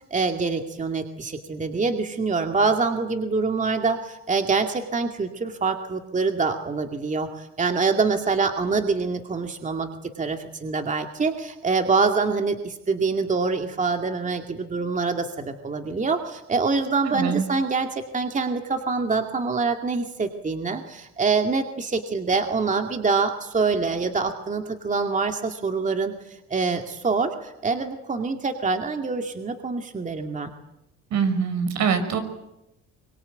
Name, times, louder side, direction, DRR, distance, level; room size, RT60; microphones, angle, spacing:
voice 1, 0.1-30.5, right 4 dB, 25° right, 5 dB, 2.3 m, -25 dB
voice 2, 17.1-17.5 31.1-32.2, right 6 dB, 65° right, 9 dB, 5.6 m, -24 dB
24.0 x 23.5 x 9.2 m, 0.92 s
cardioid pair, 110°, 30 cm